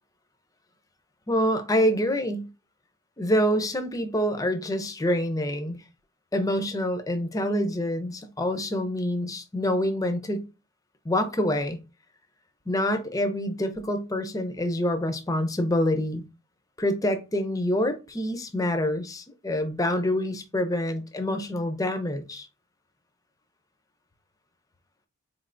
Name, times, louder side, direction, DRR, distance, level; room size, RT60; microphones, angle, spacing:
voice 1, 1.3-2.5 3.2-5.8 6.3-10.5 11.0-11.8 12.7-16.3 16.8-22.5, left 1 dB, 15° left, 0.5 m, -26 dB
4.1 x 3.2 x 2.5 m
head